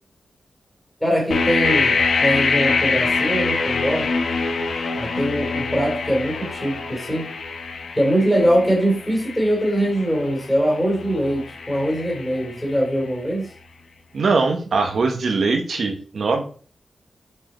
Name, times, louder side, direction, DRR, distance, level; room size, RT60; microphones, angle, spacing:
voice 1, 1.0-4.1 4.9-7.3 8.0-13.5, equal, 5° left, -2 dB, 2.8 m, -22 dB
sound 1, 1.3-13.1, left 4 dB, 75° left, 0.8 m, -25 dB
voice 2, 14.1-16.4, right 4 dB, 65° right, 4 dB, 1.0 m, -21 dB
5.5 x 4.7 x 4.2 m, 0.41 s
wide cardioid pair, 135°, 0 cm